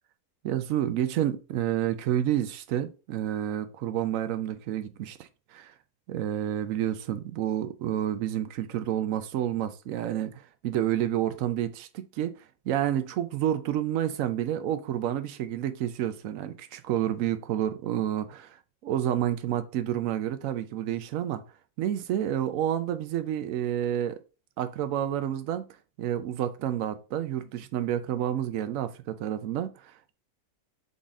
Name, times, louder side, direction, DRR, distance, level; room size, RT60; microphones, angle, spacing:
voice 1, 0.4-5.7 6.1-10.3 10.6-12.3 12.7-18.6 18.8-21.4 21.8-24.2 24.6-25.6 26.0-29.9, right 11 dB, 70° right, 0.9 m, -29 dB
4.0 x 3.7 x 3.5 m
omnidirectional pair, 1.5 m